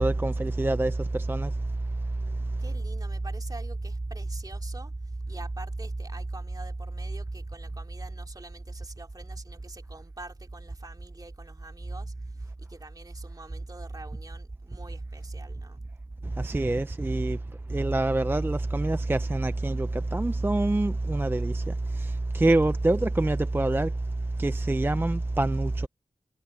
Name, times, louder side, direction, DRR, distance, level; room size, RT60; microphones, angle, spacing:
voice 1, 0.0-1.5 16.4-17.4 17.7-21.6 22.0-23.9 24.4-25.9, right 2 dB, 15° right, 0.5 m, -25 dB
voice 2, 2.6-15.8, right 2 dB, 30° right, 2.8 m, -44 dB
wide cardioid pair, 95°, 12 cm